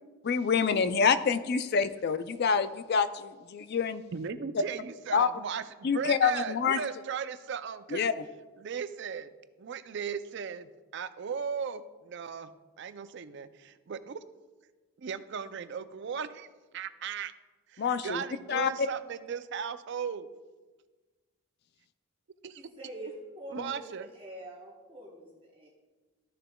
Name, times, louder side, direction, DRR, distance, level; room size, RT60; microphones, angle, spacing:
voice 1, 0.2-4.0 5.1-5.3 5.8-6.8 7.9-8.1 17.8-18.2 18.5-18.7, left 6 dB, 45° left, 13 dB, 0.3 m, -26 dB
voice 2, 4.1-8.1 8.6-9.3 9.6-12.5 12.8-14.2 15.0-16.5 16.7-17.3 17.7-20.3 22.4-22.7 23.5-24.1, right 6 dB, 50° right, 13 dB, 0.4 m, -37 dB
voice 3, 22.6-23.8 24.1-25.7, right 1 dB, 25° right, -3 dB, 1.0 m, -45 dB
13.5 x 6.7 x 2.2 m, 1.3 s
head